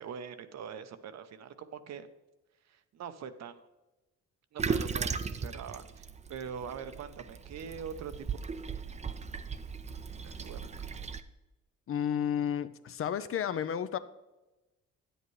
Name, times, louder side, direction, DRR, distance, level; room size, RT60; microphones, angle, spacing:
voice 1, 0.0-2.1 2.7-3.7 4.5-8.3 10.2-10.6, right 7 dB, 60° right, 11 dB, 0.7 m, -43 dB
Toilet flush, 4.6-11.2, right 5 dB, 25° right, 0.5 m, -37 dB
voice 2, 11.9-14.0, left 9 dB, 45° left, 13 dB, 0.5 m, -32 dB
9.3 x 8.0 x 3.2 m, 1.0 s
cardioid pair, 90°, 30 cm